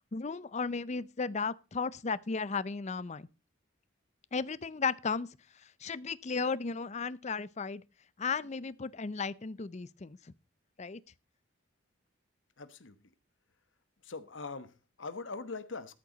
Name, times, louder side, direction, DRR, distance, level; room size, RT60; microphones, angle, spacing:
voice 1, 0.1-3.3 4.3-5.3 5.8-7.8 8.2-10.2 10.8-11.0, left 4 dB, 35° left, 0.5 m, -34 dB
voice 2, 12.6-13.1 14.0-16.0, left 4 dB, 65° left, 1.1 m, -42 dB
13.0 x 6.8 x 5.1 m
head